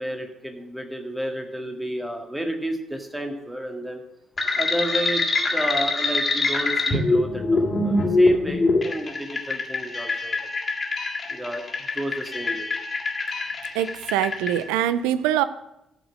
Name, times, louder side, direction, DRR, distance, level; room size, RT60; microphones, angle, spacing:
voice 1, 0.0-4.0 4.5-5.3 5.5-10.4 11.3-12.7, equal, 10° right, 4 dB, 1.9 m, -31 dB
sound 1, 4.4-14.6, left 2 dB, 35° left, 2.3 m, -24 dB
voice 2, 13.7-15.4, right 11 dB, 70° right, 14 dB, 0.4 m, -23 dB
14.0 x 5.2 x 6.3 m, 0.87 s
figure-of-eight pair, 40°, 0 cm